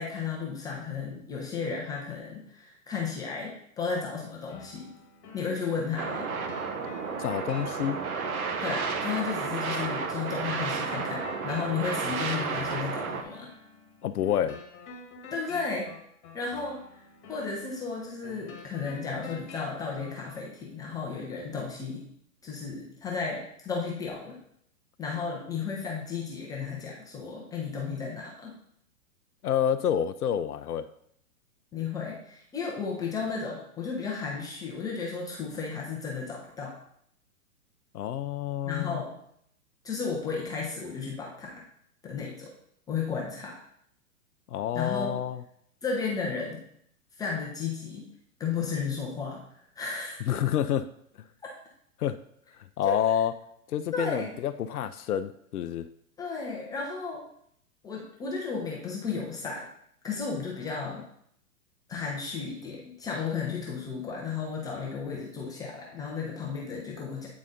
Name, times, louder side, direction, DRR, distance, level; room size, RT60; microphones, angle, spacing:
voice 1, 0.0-4.9 5.3-6.3 8.6-13.5 15.3-15.9 16.3-16.8 17.3-22.0 22.4-24.4 25.0-28.6 31.7-36.8 38.7-39.2 39.8-41.6 42.0-42.5 42.9-43.6 44.7-45.2 45.8-46.6 47.2-48.1 48.4-49.4 49.8-50.4 52.8-53.0 53.9-54.3 56.2-57.2 57.8-59.7 60.0-61.0 61.9-67.3, left 5 dB, 10° left, -2 dB, 0.5 m, -34 dB
sound 1, 4.5-20.5, left 4 dB, 25° left, 1.3 m, -49 dB
sound 2, 6.0-13.2, right 5 dB, 70° right, 1.0 m, -32 dB
voice 2, 7.2-8.0 14.0-14.6 29.4-30.9 37.9-39.0 44.5-45.4 50.3-50.9 51.2-51.3 52.0-52.2 52.6-53.3 53.7-55.9, left 9 dB, 80° left, 11 dB, 0.6 m, -28 dB
8.6 x 4.1 x 3.7 m, 0.69 s
hypercardioid pair, 120°, 45 cm